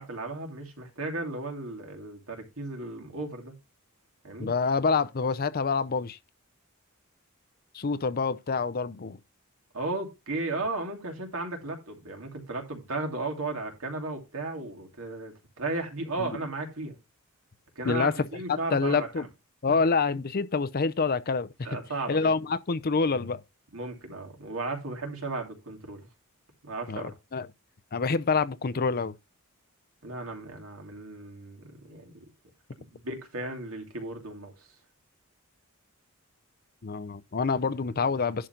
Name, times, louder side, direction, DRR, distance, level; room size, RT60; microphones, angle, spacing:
voice 1, 0.0-3.5 4.2-4.5 9.7-17.0 17.8-19.3 19.7-19.8 21.6-22.3 23.7-26.1 26.6-27.1 30.0-32.1 32.8-34.7, right 2 dB, 70° right, 2.6 m, -35 dB
voice 2, 4.4-6.2 7.7-9.2 16.2-16.3 17.8-18.3 18.7-19.3 19.6-21.7 22.1-23.4 26.9-27.5 27.9-29.1 36.8-38.5, left 4 dB, 45° left, 0.6 m, -27 dB
11.0 x 3.8 x 5.8 m
head